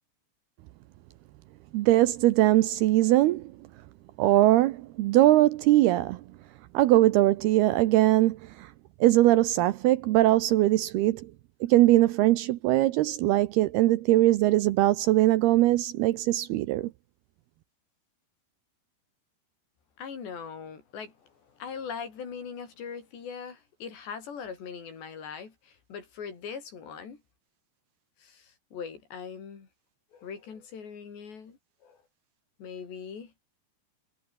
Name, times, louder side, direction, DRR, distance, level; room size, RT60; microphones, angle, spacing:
voice 1, 1.7-3.5 4.2-6.2 6.7-8.7 9.0-11.3 11.6-16.9, right 16 dB, 80° right, 2.5 m, -21 dB
voice 2, 20.0-21.1 21.6-27.2 28.2-29.7 30.1-31.6 31.8-32.0 32.6-33.3, left 6 dB, 70° left, 6.9 m, -40 dB
omnidirectional pair, 5.2 m